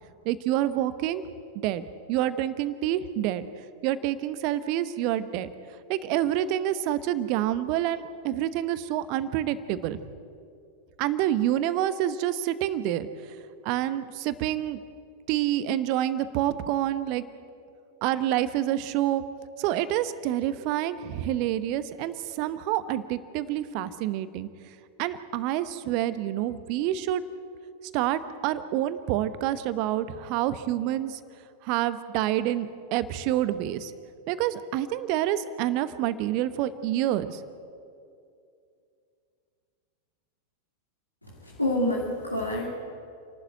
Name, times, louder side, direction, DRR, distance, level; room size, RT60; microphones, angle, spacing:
voice 1, 0.2-1.2 1.6-5.5 5.9-10.0 11.0-13.4 13.6-14.8 15.3-17.2 18.0-19.2 19.6-24.5 25.0-27.2 27.9-31.2 31.6-33.9 34.3-37.4, right 12 dB, 45° right, 14 dB, 1.0 m, -27 dB
voice 2, 41.4-42.7, left 1 dB, 85° left, -4 dB, 2.7 m, -27 dB
29.0 x 12.0 x 9.0 m, 2.5 s
figure-of-eight pair, 90°, 0 cm